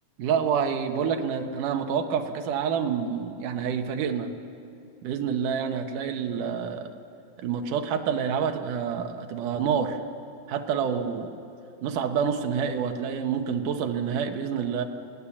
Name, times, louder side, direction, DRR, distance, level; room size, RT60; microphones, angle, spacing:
voice 1, 0.2-4.3 5.0-6.9 7.4-10.0 10.5-11.3 11.8-14.8, right 7 dB, 85° right, 5 dB, 2.8 m, -28 dB
28.5 x 19.5 x 7.3 m, 2.7 s
omnidirectional pair, 3.6 m